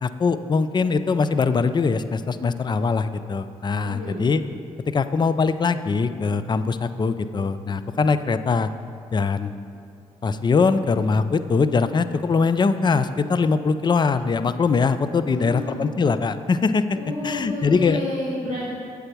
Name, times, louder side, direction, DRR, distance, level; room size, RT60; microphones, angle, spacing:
voice 1, 0.0-4.4 4.9-8.7 9.1-9.5 10.2-17.0 17.2-18.0, left 4 dB, 30° left, 11 dB, 0.4 m, -22 dB
voice 2, 3.8-4.2 15.2-15.9 16.9-18.7, left 1 dB, 85° left, -13 dB, 1.8 m, -31 dB
7.7 x 3.5 x 5.9 m, 2.4 s
hypercardioid pair, 40°, 16 cm